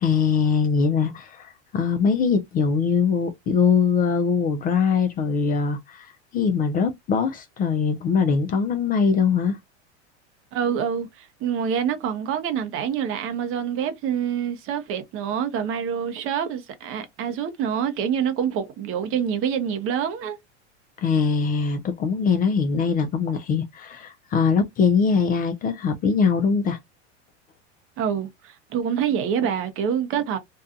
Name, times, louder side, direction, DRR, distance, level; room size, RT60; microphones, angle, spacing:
voice 1, 0.0-9.6 21.0-26.8, left 5 dB, 25° left, 0.4 m, -22 dB
voice 2, 10.5-20.4 28.0-30.4, right 8 dB, 40° right, 0.6 m, -26 dB
2.6 x 2.3 x 2.5 m
supercardioid pair, 120°, 34 cm